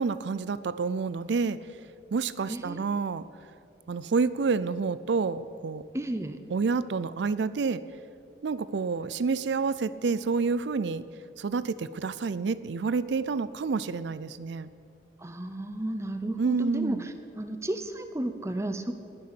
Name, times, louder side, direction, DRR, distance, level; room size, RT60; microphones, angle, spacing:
voice 1, 0.0-1.6 2.1-3.2 3.9-5.8 6.5-7.8 8.4-11.0 11.4-14.7 16.4-17.0, right 4 dB, 80° right, 16 dB, 0.4 m, -28 dB
voice 2, 2.5-2.8 5.9-6.4 15.2-18.9, right 1 dB, 15° right, 9 dB, 0.6 m, -33 dB
20.0 x 6.6 x 6.9 m, 2.4 s
head